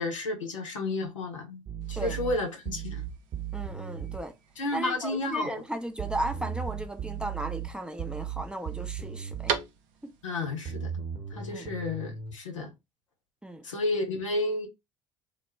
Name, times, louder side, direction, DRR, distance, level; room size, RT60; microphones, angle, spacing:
voice 1, 0.0-1.6 1.9-3.0 4.6-5.6 10.2-10.9 11.3-12.7 13.6-14.7, left 2 dB, 90° left, 0.6 m, -31 dB
sound 1, 1.7-4.2 6.0-9.6 10.7-12.3, right 8 dB, 40° right, 0.8 m, -36 dB
sound 2, 1.8-10.3, right 7 dB, 60° right, 0.5 m, -42 dB
voice 2, 3.5-4.3 4.7-9.5 10.0-10.1 11.5-11.7 13.4-13.6, right 1 dB, 5° right, 0.5 m, -35 dB
2.2 x 2.0 x 3.3 m
hypercardioid pair, 65°, 16 cm